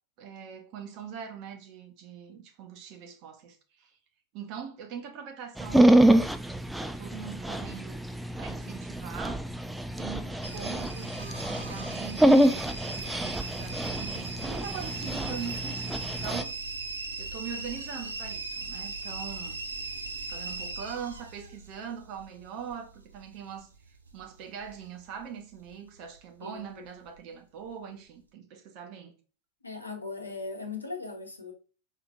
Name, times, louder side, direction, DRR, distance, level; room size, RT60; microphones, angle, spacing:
voice 1, 0.2-3.9 4.3-6.4 6.8-8.0 8.4-9.4 10.0-16.5 17.2-19.6 20.3-23.7 24.1-29.1, right 7 dB, 40° right, 0.9 m, -42 dB
Dog, 5.6-16.4, right 1 dB, 5° right, 0.3 m, -26 dB
sound 1, 10.4-25.3 25.5-26.2 26.7-27.2 27.6-27.7, right 3 dB, 75° right, 0.6 m, -39 dB
voice 2, 26.4-26.8 29.6-31.5, left 3 dB, 80° left, 0.9 m, -39 dB
4.9 x 3.9 x 2.5 m
figure-of-eight pair, 90°, 0 cm